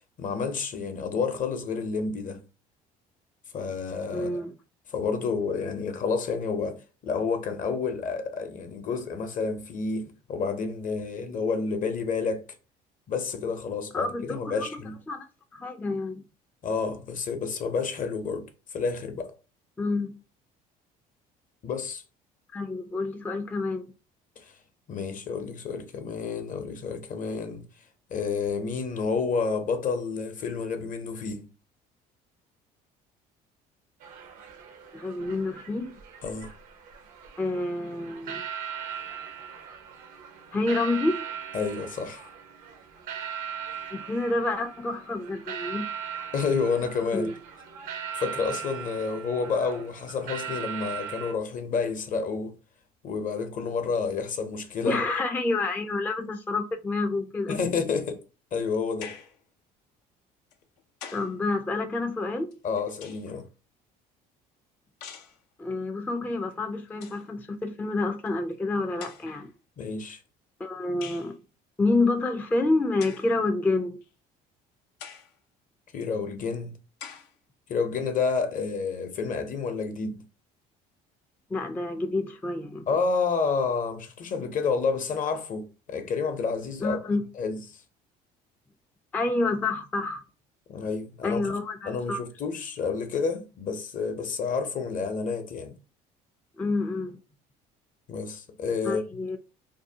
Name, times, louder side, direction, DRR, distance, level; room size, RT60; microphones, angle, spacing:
voice 1, 0.2-2.4 3.5-4.4 4.9-6.8 7.0-12.4 13.1-15.0 16.6-18.4 18.7-19.3 21.6-22.0 24.4-24.5 24.9-27.6 28.1-31.5 36.2-36.5 41.5-42.3 46.3-47.3 48.1-52.5 53.0-55.0 57.5-58.2 58.5-59.1 62.6-63.4 69.8-70.2 75.9-76.8 77.7-80.2 82.9-87.0 87.4-87.6 90.7-91.5 91.9-95.7 98.1-99.0, left 5 dB, 45° left, 0.6 m, -29 dB
voice 2, 4.1-4.5 13.9-14.8 15.1-15.3 15.5-16.2 19.8-20.1 22.5-23.9 34.9-35.9 37.4-38.4 40.5-41.2 43.9-45.9 47.1-47.3 54.8-57.6 61.1-62.5 65.6-69.5 70.6-71.3 71.8-74.0 81.5-82.9 86.8-87.2 89.1-90.2 91.2-92.2 96.6-97.2 98.8-99.4, left 2 dB, 10° left, 0.3 m, -28 dB
sound 1, 34.0-51.3, right 7 dB, 85° right, 0.6 m, -39 dB
sound 2, 59.0-59.4 60.5-61.4 62.5-63.4 65.0-65.4 66.5-66.6 66.9-67.3 68.3-68.4 69.0-69.5 71.0-71.3 73.0-73.3 74.0-74.1 75.0-75.3 76.0-76.1 77.0-77.3, left 8 dB, 85° left, 0.4 m, -44 dB
2.6 x 2.0 x 2.7 m
hypercardioid pair, 70°, 20 cm